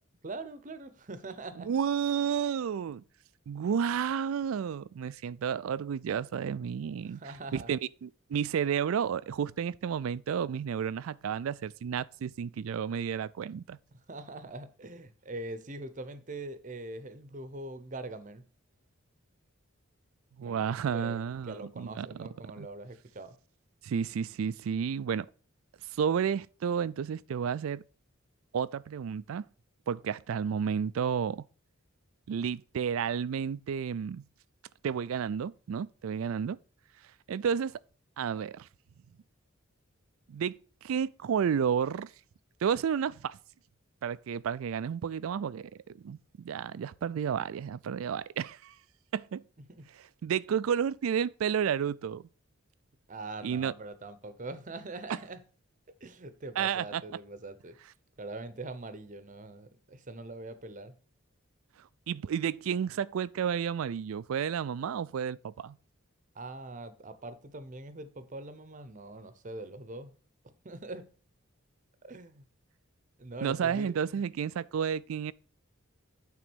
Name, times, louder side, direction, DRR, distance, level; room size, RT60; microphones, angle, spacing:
voice 1, 0.2-1.7 7.0-7.7 14.1-18.4 20.4-23.3 49.7-49.9 53.1-55.4 56.0-57.8 58.2-60.9 66.3-70.2 70.6-71.1 72.0-72.4 73.2-74.2, right 2 dB, 40° right, 0.8 m, -43 dB
voice 2, 1.6-3.0 3.5-7.2 7.5-13.8 20.4-22.7 23.8-25.3 25.9-27.8 28.5-29.4 29.9-31.4 32.3-34.2 34.8-36.6 37.3-37.8 38.2-38.7 40.3-40.5 40.8-42.1 42.6-43.4 44.0-48.7 49.1-49.4 50.2-52.2 53.4-53.7 56.6-57.0 62.1-65.8 73.4-75.3, right 7 dB, 80° right, 0.3 m, -31 dB
9.2 x 3.8 x 6.1 m
head